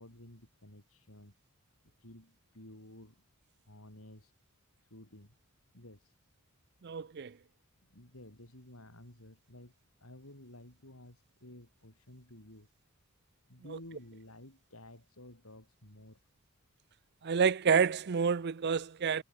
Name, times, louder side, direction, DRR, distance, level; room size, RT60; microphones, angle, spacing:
voice 1, 0.0-1.3 2.0-3.2 3.7-4.3 4.9-5.4 5.7-6.1 7.9-9.7 10.0-12.7 13.5-16.3, left 1 dB, 70° left, 6.5 m, -53 dB
voice 2, 6.8-7.3 17.2-19.2, right 6 dB, 50° right, 0.5 m, -28 dB
head